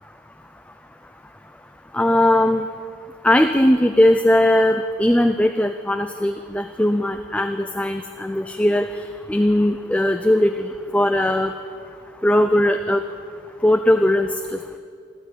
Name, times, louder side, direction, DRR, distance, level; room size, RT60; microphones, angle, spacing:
voice 1, 1.9-2.6 3.2-9.0 9.3-11.5 12.2-13.0 13.6-14.4, left 1 dB, 5° left, 7 dB, 0.4 m, -19 dB
15.0 x 13.0 x 7.2 m, 2.3 s
head